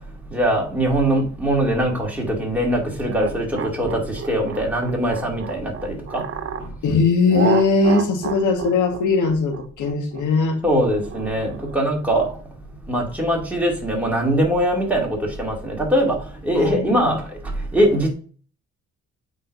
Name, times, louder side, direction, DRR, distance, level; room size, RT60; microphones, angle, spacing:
voice 1, 0.3-4.0 4.3-6.2 10.6-12.3 12.9-16.2 16.4-17.2 17.7-18.1, right 1 dB, 5° right, 2.5 m, -21 dB
sound 1, 3.1-6.7 7.3-11.8, right 7 dB, 45° right, 0.7 m, -29 dB
voice 2, 6.6-10.6 16.5-17.2, left 4 dB, 80° left, 1.6 m, -20 dB
8.2 x 5.0 x 2.7 m
cardioid pair, 90°, 30 cm